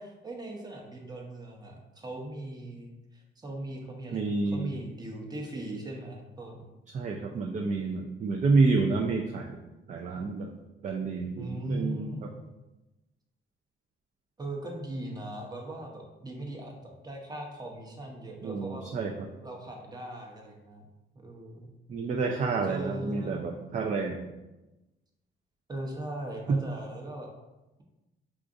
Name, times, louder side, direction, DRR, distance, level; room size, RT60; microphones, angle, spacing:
voice 1, 0.0-6.6 11.4-12.3 14.4-18.9 19.4-20.8 21.1-21.7 22.7-23.5 25.7-27.3, right 1 dB, 20° right, 0 dB, 0.8 m, -39 dB
voice 2, 4.1-4.8 6.9-9.6 9.9-10.5 10.8-12.1 18.4-19.3 21.9-24.2 26.5-26.6, right 4 dB, 40° right, 2 dB, 0.4 m, -29 dB
4.8 x 2.4 x 2.5 m, 1.0 s
cardioid pair, 90°, 20 cm